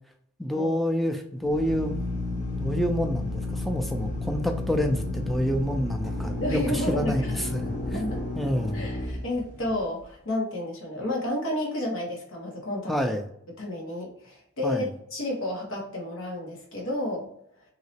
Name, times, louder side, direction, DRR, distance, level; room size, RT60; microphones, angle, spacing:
voice 1, 0.4-2.0 2.6-8.9 12.9-13.2 14.6-14.9, equal, ahead, 4 dB, 0.3 m, -28 dB
Drill, 1.4-10.0, left 2 dB, 35° left, 0.8 m, -32 dB
voice 2, 6.4-7.4 7.9-8.2 8.7-12.9 13.6-14.8 15.1-17.3, left 1 dB, 85° left, -1 dB, 1.2 m, -31 dB
3.1 x 2.8 x 2.8 m, 0.72 s
head